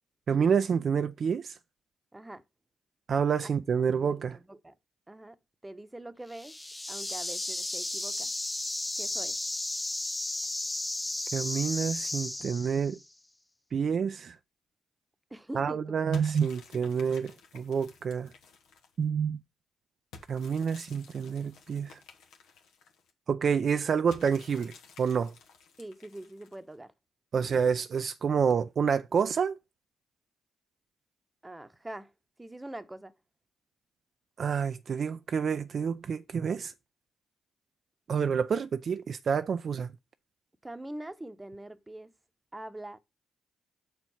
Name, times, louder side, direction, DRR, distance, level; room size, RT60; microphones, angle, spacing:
voice 1, 0.3-1.5 3.1-4.4 11.3-13.0 13.7-14.4 15.6-18.3 19.0-19.4 20.3-22.0 23.3-25.3 27.3-29.6 34.4-36.7 38.1-39.9, right 6 dB, 55° right, 0.4 m, -28 dB
voice 2, 2.1-2.4 3.4-3.5 4.3-4.7 5.1-5.4 5.6-6.6 6.9-8.3 9.0-9.4 15.3-15.8 25.8-26.9 31.4-32.1 32.4-33.2 40.6-42.1 42.5-43.0, right 1 dB, 15° right, 0.9 m, -43 dB
sound 1, 6.3-13.0, left 1 dB, 15° left, 0.7 m, -34 dB
sound 2, 16.1-19.0 20.1-23.1 24.1-26.7, left 5 dB, 80° left, 1.3 m, -53 dB
6.9 x 4.6 x 5.6 m
supercardioid pair, 55°, 0 cm